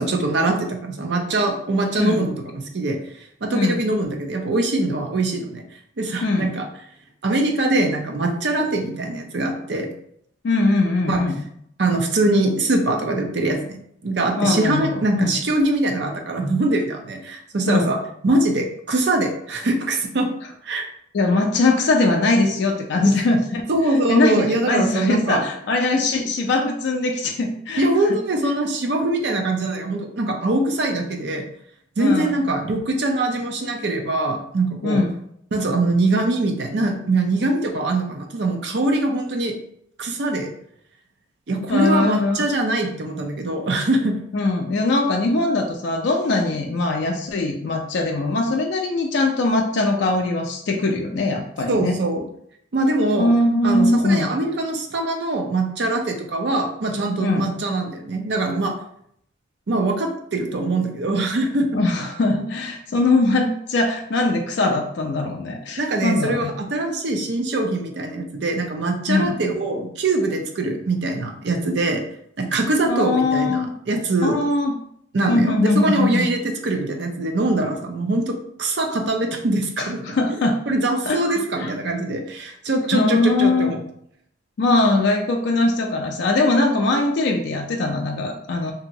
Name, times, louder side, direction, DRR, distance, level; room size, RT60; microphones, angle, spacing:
voice 1, 0.0-3.0 3.4-5.6 6.0-6.6 7.2-9.9 11.1-11.2 11.8-18.0 18.2-20.3 20.6-20.8 23.0-23.1 23.7-25.4 27.8-31.4 32.0-35.0 35.5-39.5 40.0-40.5 41.5-44.2 51.7-52.2 52.7-53.3 53.6-58.7 59.7-61.7 65.8-72.0 72.4-74.4 75.1-80.2 80.7-83.8, right 2 dB, 60° right, 3 dB, 0.5 m, -23 dB
voice 2, 6.2-6.6 10.4-11.4 14.4-15.3 17.7-17.9 21.1-23.6 24.1-28.2 32.0-32.4 34.8-35.2 41.7-42.4 44.3-52.0 53.2-54.3 57.2-57.5 61.7-66.5 69.1-69.4 72.9-73.7 74.2-74.8 75.3-76.3 79.8-80.6 81.1-81.7 82.9-83.7 84.6-88.7, left 2 dB, 65° left, 1 dB, 0.4 m, -21 dB
2.9 x 2.7 x 2.6 m, 0.69 s
head